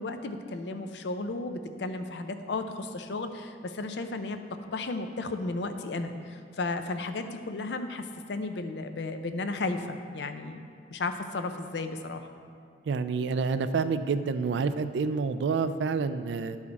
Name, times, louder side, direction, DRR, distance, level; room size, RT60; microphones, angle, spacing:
voice 1, 0.0-4.4 4.7-10.6 10.9-12.3, left 3 dB, 70° left, 8 dB, 0.5 m, -34 dB
voice 2, 12.9-16.6, right 5 dB, 75° right, 12 dB, 0.3 m, -28 dB
11.0 x 4.8 x 4.1 m, 2.2 s
head